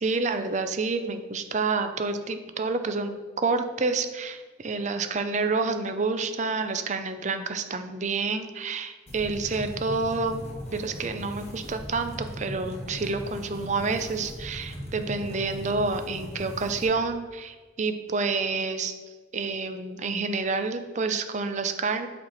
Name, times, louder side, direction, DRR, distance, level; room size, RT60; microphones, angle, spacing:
voice 1, 0.0-10.4 10.7-18.9 19.3-22.1, right 4 dB, 40° right, 8 dB, 0.5 m, -28 dB
sound 1, 9.1-16.8, equal, 35° left, 1.3 m, -39 dB
7.7 x 4.4 x 4.2 m, 1.4 s
head